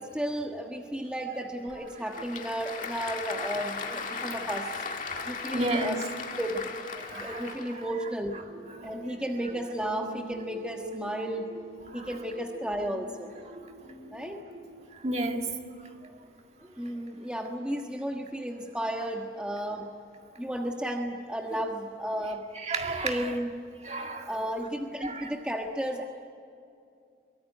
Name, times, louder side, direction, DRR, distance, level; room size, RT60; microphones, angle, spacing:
voice 1, 0.0-4.7 5.3-6.0 6.4-6.6 7.1-8.4 8.8-11.5 11.9-13.3 14.1-14.4 16.8-19.9 20.4-22.4 23.0-23.5 24.3-26.0, equal, 5° right, 2 dB, 1.3 m, -33 dB
Applause / Crowd, 1.7-7.9, left 4 dB, 45° left, 2.1 m, -37 dB
voice 2, 5.5-6.0 7.0-7.9 8.8-9.0 11.9-12.1 15.0-15.6 22.6-23.3 23.8-24.3 25.0-25.3, right 2 dB, 35° right, 3 dB, 2.1 m, -32 dB
sound 1, 7.8-14.9, right 1 dB, 65° right, 3.0 m, -45 dB
23.5 x 23.0 x 9.8 m, 2.5 s
head